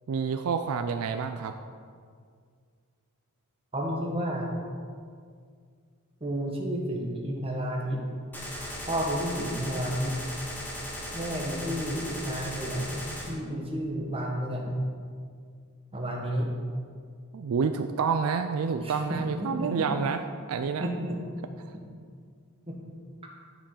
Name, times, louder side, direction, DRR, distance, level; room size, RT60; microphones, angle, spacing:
voice 1, 0.1-1.5 17.3-20.2 20.5-20.9, right 5 dB, 70° right, 8 dB, 0.4 m, -28 dB
voice 2, 3.7-4.5 6.2-8.0 8.9-10.2 11.1-13.0 13.3-14.8 15.9-16.5 18.8-19.9 20.8-21.2 22.7-22.8, equal, 25° right, -1 dB, 1.3 m, -31 dB
Gunshot gunfire, 8.3-13.3, equal, 10° left, 1.2 m, -37 dB
10.0 x 4.6 x 5.6 m, 2.1 s
head